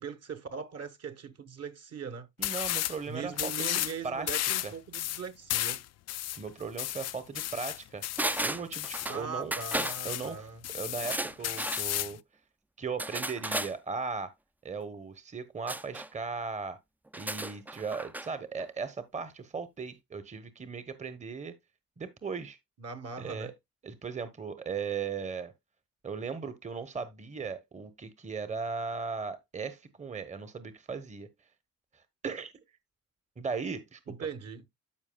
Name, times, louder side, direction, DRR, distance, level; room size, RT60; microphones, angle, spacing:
voice 1, 0.0-2.3 3.1-5.8 9.1-10.6 22.8-23.5 34.1-34.6, right 5 dB, 55° right, 1.2 m, -40 dB
sound 1, 2.4-3.0 3.3-4.0 4.3-9.1 9.6-10.3 10.6-12.2, left 13 dB, 60° left, 0.4 m, -33 dB
voice 2, 2.4-4.7 6.4-8.0 8.4-9.6 10.0-10.5 10.7-12.2 12.8-14.3 14.6-16.8 17.1-21.6 22.0-22.6 23.2-23.5 23.8-25.5 26.0-31.3 31.9-32.5 33.4-34.2, right 5 dB, 25° right, 0.9 m, -37 dB
sound 2, 8.2-9.2 9.5-10.0 11.0-11.9 13.0-13.7 15.7-16.1 17.1-18.3 18.6-18.7, right 1 dB, 5° right, 0.4 m, -34 dB
12.5 x 4.8 x 2.2 m
cardioid pair, 75°, 30 cm